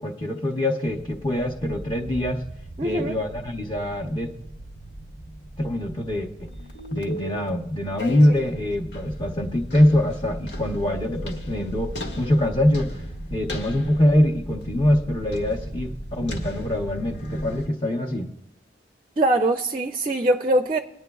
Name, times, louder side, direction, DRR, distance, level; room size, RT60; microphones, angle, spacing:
voice 1, 0.0-2.4 2.8-4.3 5.6-6.5 6.9-13.0 13.3-18.3, left 1 dB, 25° left, 0.8 m, -23 dB
sound 1, 0.8-17.7, equal, 85° left, 1.6 m, -37 dB
voice 2, 2.8-3.1 19.2-20.8, right 1 dB, 30° right, 0.4 m, -22 dB
21.0 x 9.6 x 2.3 m
head